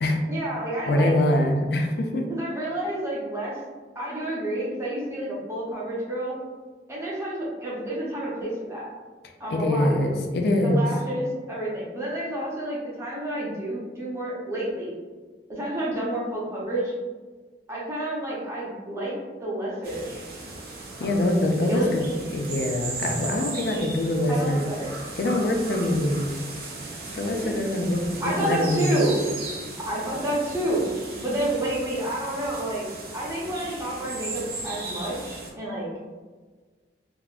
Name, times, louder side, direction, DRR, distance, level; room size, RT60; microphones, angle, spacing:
voice 1, 0.3-1.1 2.3-3.6 3.9-6.4 6.9-8.9 9.4-10.0 10.6-15.0 15.5-16.9 17.7-19.2 19.4-20.1 21.0-21.3 21.6-21.9 23.7-23.8 24.3-25.0 27.3-27.8 28.2-29.2 29.9-30.9 31.2-32.8 33.1-35.9, right 1 dB, 15° right, -6 dB, 0.7 m, -29 dB
voice 2, 0.9-2.2 9.5-10.8 21.0-22.0 22.3-24.7 25.2-26.3 27.1-29.0, left 1 dB, 60° left, 3 dB, 0.4 m, -24 dB
sound 1, 19.8-35.5, right 3 dB, 55° right, 0.5 m, -37 dB
3.4 x 2.0 x 2.4 m, 1.4 s
head